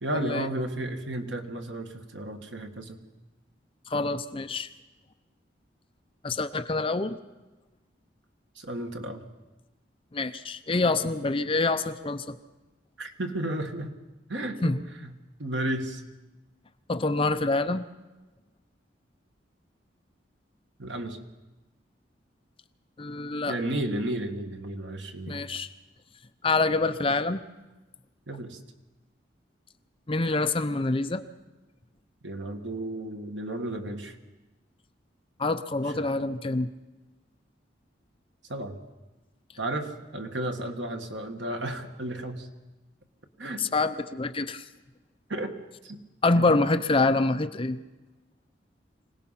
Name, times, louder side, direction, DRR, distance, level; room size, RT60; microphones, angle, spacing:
voice 1, 0.0-3.0 8.6-9.2 13.0-13.9 14.3-14.7 15.0-15.1 15.4-16.0 20.8-21.2 23.5-25.4 28.3-28.6 32.2-34.2 35.9-36.0 38.5-38.8 39.6-42.5 43.4-43.6 45.3-45.5 45.8-46.0 46.3-46.6, right 1 dB, 75° right, 5 dB, 1.7 m, -33 dB
voice 2, 3.9-4.7 6.2-7.2 10.1-12.4 14.6-14.8 16.9-17.9 23.0-23.6 25.3-25.7 26.4-27.4 30.1-31.2 35.4-36.7 43.6-44.6 46.2-47.8, left 3 dB, 30° left, 9 dB, 0.7 m, -26 dB
25.0 x 18.0 x 5.7 m, 1.1 s
head